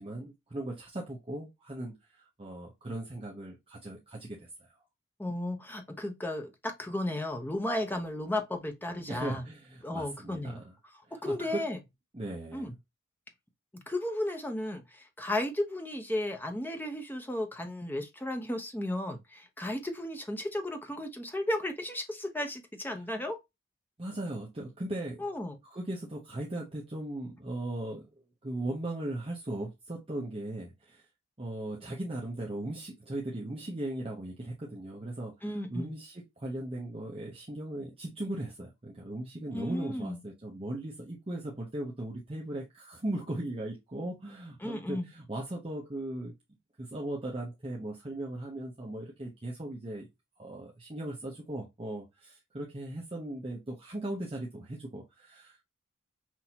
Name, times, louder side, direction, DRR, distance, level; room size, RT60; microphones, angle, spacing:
voice 1, 0.0-1.9 2.4-4.7 9.1-10.7 11.3-11.6 12.1-12.7 24.0-25.2 25.7-28.1 28.4-31.0 31.4-35.3 35.7-46.3 46.8-50.1 50.4-55.6, right 1 dB, 25° right, 0.7 m, -38 dB
voice 2, 5.2-9.4 9.8-10.6 11.2-11.8 12.5-12.7 13.9-23.4 25.2-25.6 35.4-35.9 39.5-40.2 44.6-45.1, left 1 dB, 10° left, 0.7 m, -34 dB
5.9 x 2.7 x 2.8 m
head